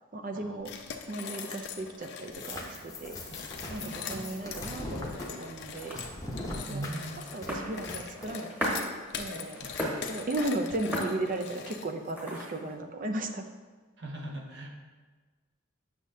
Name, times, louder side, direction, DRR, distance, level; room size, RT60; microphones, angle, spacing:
voice 1, 0.1-0.7 1.1-3.2 3.7-5.1 5.4-6.0 6.5-6.8 7.2-8.9 9.2-9.6 10.1-13.4, right 2 dB, 40° right, 6 dB, 0.5 m, -35 dB
sound 1, 0.6-2.7 3.2-12.1, left 6 dB, 55° left, 0.5 m, -42 dB
sound 2, 2.3-8.3, left 1 dB, 15° left, 0.8 m, -41 dB
voice 2, 3.8-4.2 6.7-7.2 9.6-10.0 14.0-14.7, right 1 dB, 55° right, 1 dB, 1.0 m, -40 dB
sound 3, 4.7-12.7, equal, 10° right, 1.3 m, -39 dB
8.3 x 6.3 x 2.7 m, 1.4 s
head